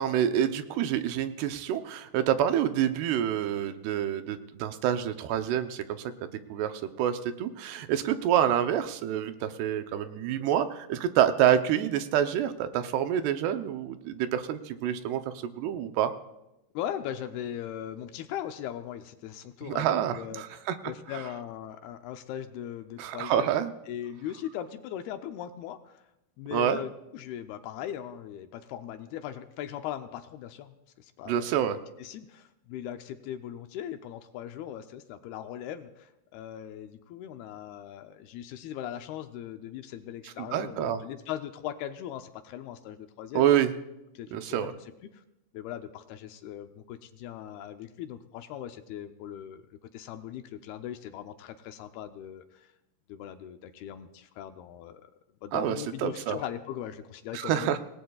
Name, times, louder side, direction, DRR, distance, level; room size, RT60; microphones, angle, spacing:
voice 1, 0.0-16.1 19.7-20.8 23.0-23.7 26.5-26.8 31.3-31.8 40.4-41.0 43.3-43.7 44.3-44.7 55.5-56.4 57.3-57.8, right 10 dB, 85° right, 9 dB, 2.9 m, -27 dB
voice 2, 16.7-23.6 23.9-26.0 26.4-31.5 32.0-43.5 44.2-45.2 45.5-52.7 53.1-55.0 55.4-57.8, left 10 dB, 80° left, 7 dB, 2.6 m, -39 dB
26.0 x 19.0 x 2.4 m, 0.91 s
omnidirectional pair, 4.6 m